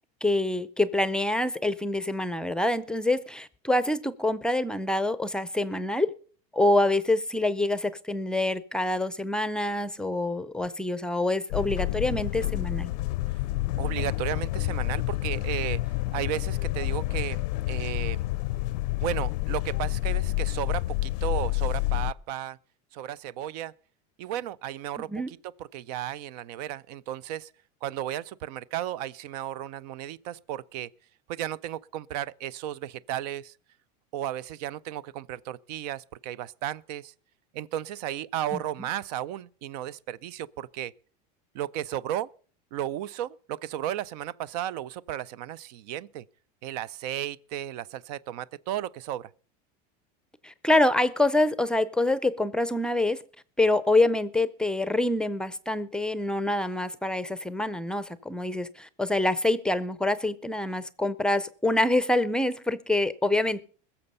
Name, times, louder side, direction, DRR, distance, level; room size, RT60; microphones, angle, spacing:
voice 1, 0.2-6.1 6.5-12.9 25.1-25.3 38.5-38.6 50.4-53.2 53.6-63.6, left 2 dB, 5° left, 0.5 m, -26 dB
sound 1, 11.5-22.1, left 18 dB, 85° left, 0.5 m, -29 dB
voice 2, 13.8-15.8 16.1-18.3 19.0-22.6 22.9-23.7 24.2-25.4 25.7-27.5 27.8-30.9 31.3-33.5 34.1-37.1 37.5-40.9 41.5-42.3 42.7-46.2 46.6-49.3, right 12 dB, 75° right, 0.5 m, -34 dB
21.0 x 7.0 x 5.4 m
supercardioid pair, 140°, 21 cm